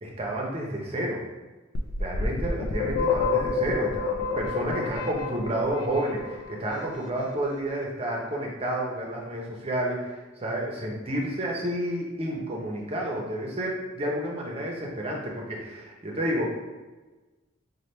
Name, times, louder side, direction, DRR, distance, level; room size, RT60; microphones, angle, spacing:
voice 1, 0.0-1.2 2.0-16.5, right 1 dB, 30° right, -2 dB, 0.6 m, -30 dB
sound 1, 1.7-6.6, left 5 dB, 80° left, 0.4 m, -29 dB
3.2 x 2.2 x 4.1 m, 1.2 s
head